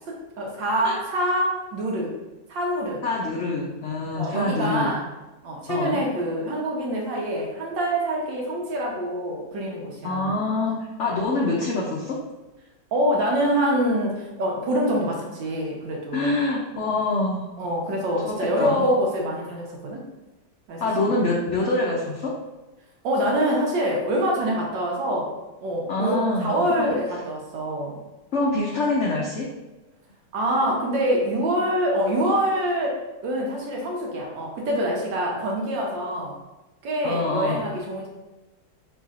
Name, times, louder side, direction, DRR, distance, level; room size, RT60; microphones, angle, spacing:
voice 1, 0.1-2.2 2.5-3.0 4.1-5.0 5.4-10.4 12.9-16.4 17.6-20.1 20.7-21.3 23.0-25.3 25.6-28.0 30.3-36.4 36.8-38.1, equal, 75° right, -1 dB, 1.6 m, -25 dB
voice 2, 3.0-4.9 5.7-6.0 10.0-12.2 16.1-17.5 18.2-18.8 20.8-22.3 25.9-27.0 28.3-29.5 37.0-37.6, left 2 dB, 80° left, -3 dB, 0.6 m, -25 dB
5.4 x 3.7 x 2.4 m, 1.1 s
omnidirectional pair, 2.0 m